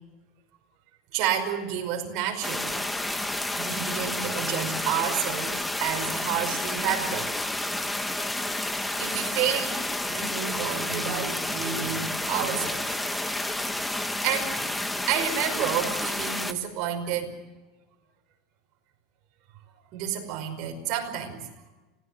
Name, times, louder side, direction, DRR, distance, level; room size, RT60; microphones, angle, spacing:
voice 1, 1.1-2.8 3.6-7.3 9.0-13.0 14.2-14.6 15.1-17.3 19.9-21.4, right 9 dB, 45° right, 2 dB, 5.3 m, -30 dB
sound 1, 2.4-16.5, left 1 dB, 5° left, 1.0 m, -30 dB
26.0 x 18.0 x 7.5 m, 1.2 s
supercardioid pair, 160°, 0 cm